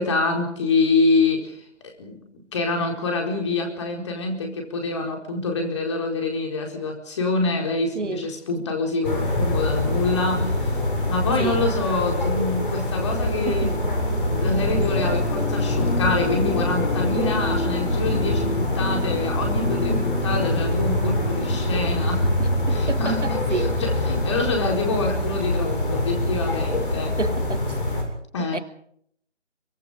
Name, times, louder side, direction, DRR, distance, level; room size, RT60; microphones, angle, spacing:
voice 1, 0.0-1.6 2.0-10.7 11.1-13.8 14.4-22.4 22.7-27.2 28.3-28.6, left 3 dB, 25° left, 4.5 m, -26 dB
voice 2, 7.9-8.3 11.4-11.7 13.4-13.8 19.9-20.0 22.4-23.7 27.2-27.8 28.5-28.6, right 4 dB, 85° right, 1.6 m, -30 dB
sound 1, 9.0-28.0, left 1 dB, 45° left, 7.2 m, -25 dB
sound 2, 13.2-23.2, left 1 dB, 75° left, 4.0 m, -29 dB
25.0 x 24.5 x 5.0 m
figure-of-eight pair, 160°, 35 cm